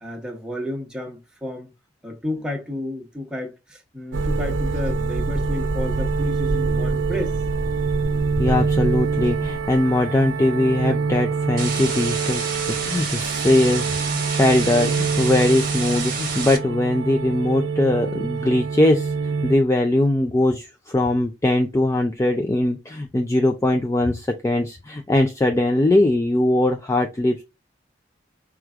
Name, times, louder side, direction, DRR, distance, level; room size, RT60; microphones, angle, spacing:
voice 1, 0.0-1.7 2.0-7.4, left 1 dB, 5° right, 0.9 m, -31 dB
sound 1, 4.1-19.5, right 4 dB, 80° right, 0.5 m, -25 dB
voice 2, 8.4-19.1 19.4-27.4, left 1 dB, 15° left, 0.3 m, -21 dB
sound 2, 11.6-16.6, right 5 dB, 50° right, 0.9 m, -29 dB
4.6 x 2.4 x 3.5 m
head